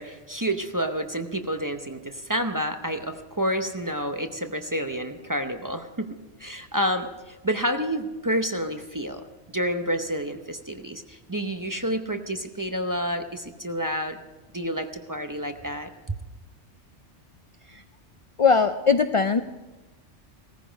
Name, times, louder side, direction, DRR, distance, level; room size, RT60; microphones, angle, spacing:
voice 1, 0.0-9.2 9.5-14.2 14.5-16.2, equal, 20° right, 6 dB, 0.7 m, -29 dB
voice 2, 18.4-19.4, left 5 dB, 50° left, 9 dB, 0.4 m, -20 dB
18.0 x 14.5 x 5.1 m, 1.1 s
omnidirectional pair, 1.2 m